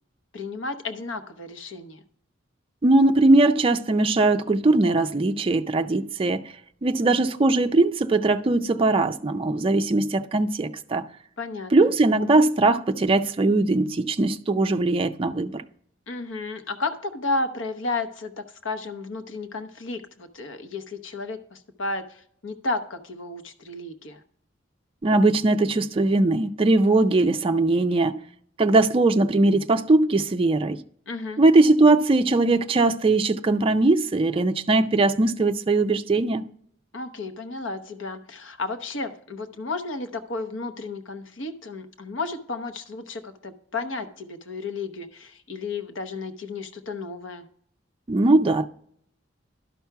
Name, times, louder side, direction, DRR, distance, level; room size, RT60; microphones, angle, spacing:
voice 1, 0.3-2.0 11.4-11.9 16.1-24.2 31.1-31.4 36.9-47.5, left 3 dB, 75° left, 0.9 m, -33 dB
voice 2, 2.8-6.5 6.8-11.1 11.7-15.6 25.0-28.2 28.6-30.8 31.4-36.5 48.1-48.7, right 2 dB, 30° right, 0.4 m, -20 dB
11.5 x 5.9 x 4.6 m
head